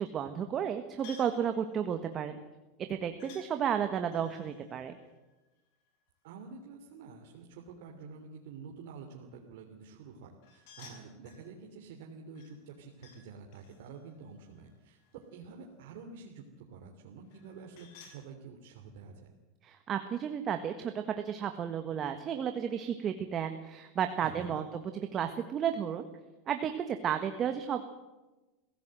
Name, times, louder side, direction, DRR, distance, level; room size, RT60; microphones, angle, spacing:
voice 1, 0.0-2.4 2.8-5.0 19.6-24.7 25.1-26.1 26.5-27.8, right 8 dB, 30° right, 7 dB, 1.6 m, -33 dB
sound 1, 1.0-1.4 3.2-3.5 4.1-5.9 10.4-11.5 12.4-13.2 13.5-15.4 17.3-18.2, left 5 dB, 65° left, 6.7 m, -56 dB
voice 2, 6.2-19.3 24.2-24.6, right 5 dB, 75° right, 1 dB, 3.0 m, -49 dB
24.5 x 16.0 x 7.7 m, 1.1 s
supercardioid pair, 135°, 0 cm